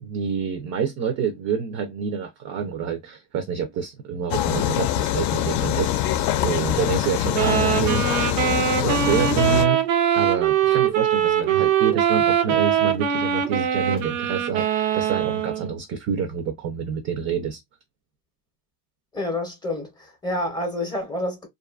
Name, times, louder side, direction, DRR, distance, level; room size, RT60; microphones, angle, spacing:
voice 1, 0.0-8.1 8.8-9.8 10.1-17.6, right 6 dB, 45° right, 0.5 m, -27 dB
sound 1, 4.3-9.7, left 12 dB, 60° left, 0.5 m, -24 dB
sound 2, 7.3-15.7, right 9 dB, 80° right, 0.7 m, -22 dB
voice 2, 19.1-21.5, left 1 dB, 10° left, 0.6 m, -28 dB
2.6 x 2.4 x 2.3 m
cardioid pair, 135°, 41 cm